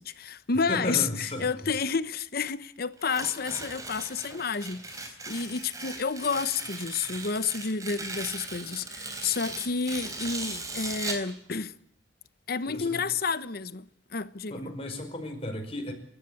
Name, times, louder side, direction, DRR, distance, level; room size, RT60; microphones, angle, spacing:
voice 1, 0.0-11.7 12.5-13.9 14.1-14.6, left 5 dB, 55° left, 0.9 m, -30 dB
voice 2, 0.7-1.5 12.7-13.0 14.5-15.9, left 1 dB, 30° left, 5.2 m, -34 dB
Tearing, 3.0-11.3, right 3 dB, 20° right, 3.9 m, -38 dB
29.5 x 13.0 x 8.4 m
head